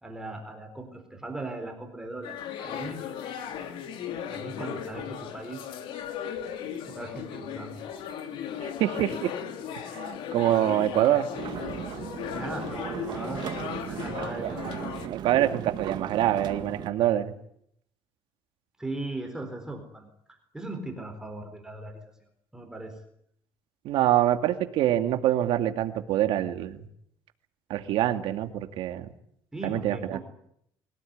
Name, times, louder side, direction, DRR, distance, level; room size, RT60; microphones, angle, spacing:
voice 1, 0.0-3.0 4.3-5.7 6.9-7.8 12.3-13.5 13.9-14.9 18.8-20.1 20.5-22.0 22.5-23.0 29.5-30.2, right 2 dB, 5° right, 3 dB, 4.1 m, -38 dB
sound 1, 2.2-15.1, left 9 dB, 65° left, 2.8 m, -37 dB
voice 2, 8.6-9.3 9.9-11.3 14.4-14.5 15.0-17.3 23.8-26.8 27.7-29.1 29.6-30.2, right 12 dB, 70° right, 7 dB, 2.4 m, -25 dB
sound 2, 11.3-16.9, right 10 dB, 50° right, 2.0 m, -37 dB
24.5 x 17.5 x 9.5 m, 0.72 s
cardioid pair, 155°, 9 cm